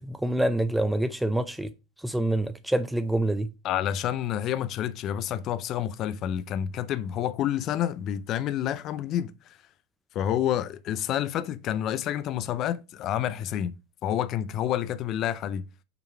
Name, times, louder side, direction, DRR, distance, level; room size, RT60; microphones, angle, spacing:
voice 1, 0.0-1.7 2.0-3.5, right 1 dB, 5° right, 0.5 m, -26 dB
voice 2, 3.6-9.3 10.1-13.7 14.0-15.6, left 10 dB, 45° left, 0.4 m, -29 dB
5.8 x 3.8 x 4.3 m
hypercardioid pair, 90°, 0 cm